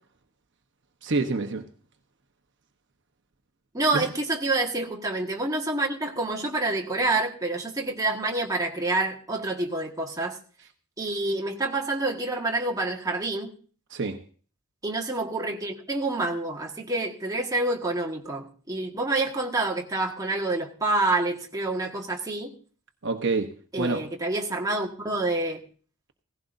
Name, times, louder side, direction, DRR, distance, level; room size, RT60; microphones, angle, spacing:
voice 1, 1.0-1.7 3.9-4.1 13.9-14.2 23.0-24.0, right 3 dB, 55° right, 5 dB, 1.0 m, -27 dB
voice 2, 3.7-10.4 11.0-13.5 14.8-22.5 23.7-25.6, right 2 dB, 15° right, 0 dB, 1.5 m, -27 dB
17.0 x 15.5 x 2.7 m, 0.41 s
head